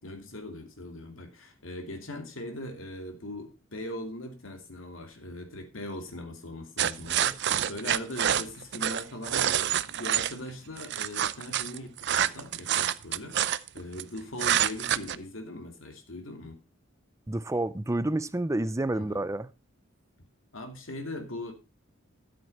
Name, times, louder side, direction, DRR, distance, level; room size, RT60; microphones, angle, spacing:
voice 1, 0.0-16.6 18.9-19.2 20.5-21.5, left 1 dB, 70° left, 2.6 m, -40 dB
sound 1, 6.8-10.3 10.8-14.0 14.4-15.1, right 10 dB, 55° right, 0.6 m, -27 dB
voice 2, 17.3-19.5, right 1 dB, 15° right, 0.5 m, -29 dB
13.0 x 7.9 x 4.2 m
head